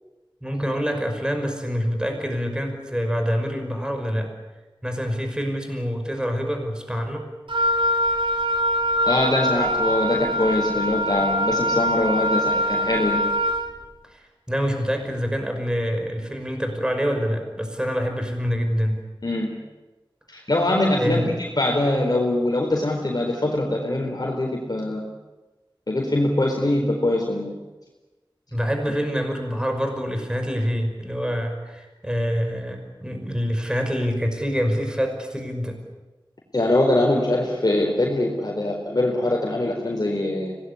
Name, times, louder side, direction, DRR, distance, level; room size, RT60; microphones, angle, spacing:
voice 1, 0.4-4.3 4.8-7.3 14.0-19.0 21.0-21.4 28.5-35.8, equal, 10° right, 4 dB, 5.5 m, -26 dB
Wind instrument woodwind instrument, 7.5-13.7, equal, 90° right, 2.7 m, -23 dB
voice 2, 9.1-13.2 19.2-19.5 20.3-25.0 25.9-27.5 36.5-40.6, left 1 dB, 50° left, -1 dB, 4.2 m, -23 dB
25.5 x 19.0 x 9.9 m, 1.2 s
wide cardioid pair, 60°, 8 cm